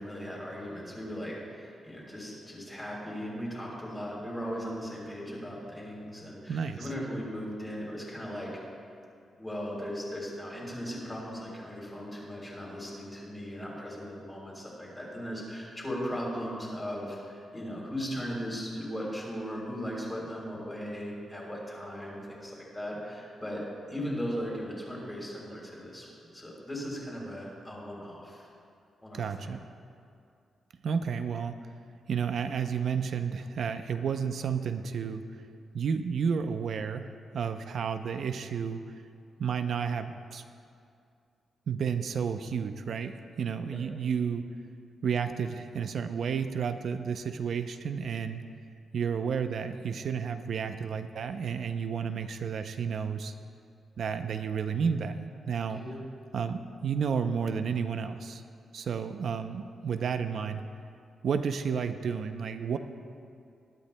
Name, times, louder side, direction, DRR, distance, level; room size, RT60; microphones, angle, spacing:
voice 1, 0.0-8.5 9.4-23.6 23.9-26.1 26.3-28.5 29.0-29.5 43.7-43.8 55.7-56.0, equal, 10° left, -4 dB, 3.4 m, -38 dB
voice 2, 6.5-6.9 29.1-29.6 30.8-31.6 32.1-35.2 35.7-38.8 39.4-40.4 41.7-44.5 45.0-48.4 48.9-53.3 54.0-55.8 56.3-58.4 58.7-60.6 61.2-62.8, right 6 dB, 60° right, 8 dB, 0.5 m, -31 dB
21.0 x 12.0 x 2.2 m, 2.4 s
wide cardioid pair, 150°, 0 cm